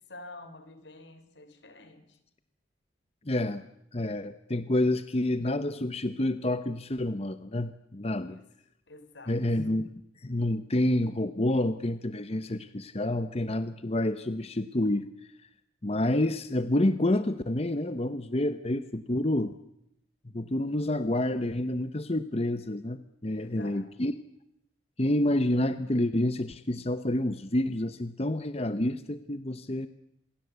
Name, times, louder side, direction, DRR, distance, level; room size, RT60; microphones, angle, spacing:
voice 1, 0.1-2.2 8.2-8.4 8.9-9.4 23.3-23.9, left 2 dB, 85° left, 3.8 m, -48 dB
voice 2, 3.3-3.6 3.9-8.4 9.3-9.9 10.2-15.0 15.8-19.5 20.3-23.0 23.2-24.1 25.0-29.9, left 1 dB, 35° left, 1.0 m, -28 dB
27.5 x 22.0 x 8.2 m
head